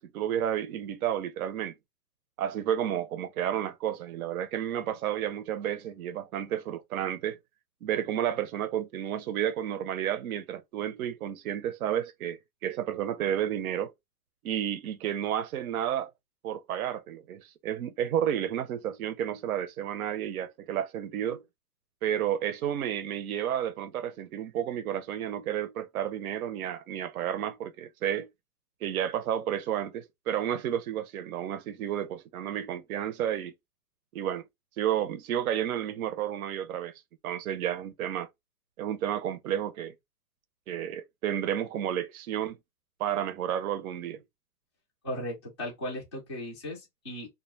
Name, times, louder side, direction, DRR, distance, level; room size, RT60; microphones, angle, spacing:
voice 1, 0.0-1.7 2.4-7.4 7.8-13.9 14.4-16.1 16.4-21.4 22.0-28.3 28.8-33.5 34.1-34.4 34.8-36.9 37.2-38.3 38.8-39.9 40.7-42.6 43.0-44.2, right 10 dB, 65° right, 0.6 m, -31 dB
voice 2, 45.0-47.3, left 1 dB, 20° left, 0.3 m, -37 dB
2.2 x 2.0 x 3.0 m
hypercardioid pair, 145°, 47 cm